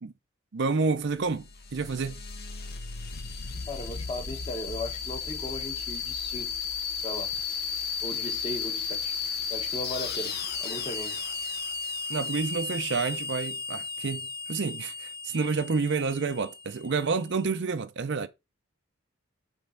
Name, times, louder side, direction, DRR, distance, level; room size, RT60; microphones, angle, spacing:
voice 1, 0.5-1.4 1.7-2.1 12.1-18.3, right 4 dB, 55° right, 0.5 m, -29 dB
sound 1, 1.1-17.4, left 5 dB, 45° left, 0.7 m, -34 dB
voice 2, 3.7-6.5 7.0-7.3 8.0-9.1 9.5-11.2, left 1 dB, 25° left, 1.1 m, -37 dB
5.3 x 3.5 x 5.6 m
head